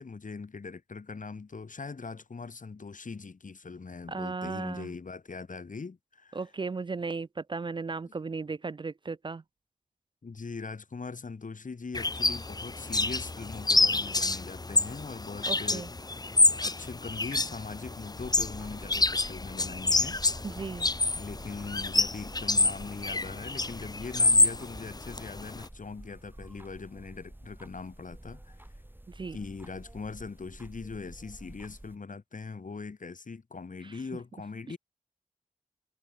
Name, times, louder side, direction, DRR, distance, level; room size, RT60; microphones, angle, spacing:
voice 1, 0.0-6.4 10.2-15.9 16.5-20.2 21.2-28.7 29.3-34.8, left 4 dB, 65° left, 2.0 m, -41 dB
voice 2, 4.1-4.9 6.3-9.4 15.5-15.9 20.4-20.9 29.1-29.4 33.8-33.9, right 4 dB, 35° right, 0.3 m, -36 dB
sound 1, 11.9-25.7, left 3 dB, 25° left, 0.7 m, -28 dB
Clock Ticking, 18.2-32.0, right 1 dB, 15° right, 2.1 m, -49 dB
cardioid pair, 45°, 14 cm